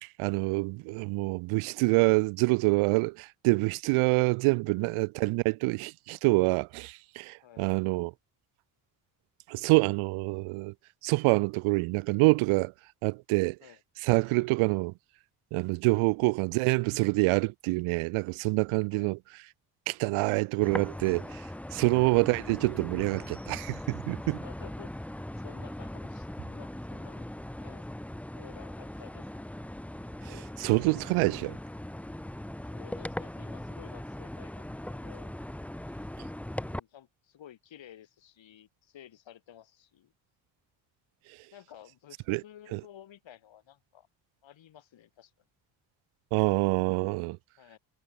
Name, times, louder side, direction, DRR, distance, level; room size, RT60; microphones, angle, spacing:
voice 1, 0.2-8.1 9.5-10.7 11.0-12.7 13.0-13.6 14.0-14.9 15.5-19.2 19.9-21.4 21.7-24.4 30.2-31.6 42.3-42.4 42.7-42.8 46.3-47.4, right 25 dB, 85° right, 0.8 m, -26 dB
sound 1, 20.6-36.8, left 1 dB, 5° left, 0.7 m, -40 dB
voice 2, 24.4-24.9 25.4-27.3 27.6-29.5 32.7-35.3 36.5-40.1 41.5-44.1 44.4-45.3 47.6-47.8, left 10 dB, 65° left, 5.2 m, -53 dB
supercardioid pair, 60°, 49 cm